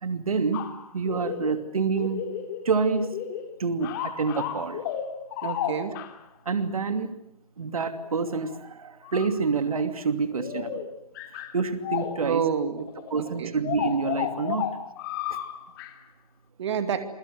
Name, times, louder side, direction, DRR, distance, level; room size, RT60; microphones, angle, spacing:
voice 1, 0.0-0.7 0.9-2.3 2.6-3.1 3.6-4.8 6.5-7.1 7.6-10.8 11.5-12.4 13.1-14.7 15.3-15.4, right 5 dB, 70° right, 9 dB, 2.7 m, -27 dB
sound 1, 0.5-1.6 2.0-2.7 3.0-3.5 3.8-6.2 8.0-8.6 9.0-9.3 9.7-9.8 10.3-12.3 12.8-15.9, left 10 dB, 35° left, 3.1 m, -33 dB
voice 2, 5.4-5.9 12.2-12.9 13.1-13.5 16.6-17.1, right 7 dB, 50° right, 9 dB, 2.7 m, -28 dB
27.5 x 24.0 x 8.0 m, 0.71 s
figure-of-eight pair, 140°, 19 cm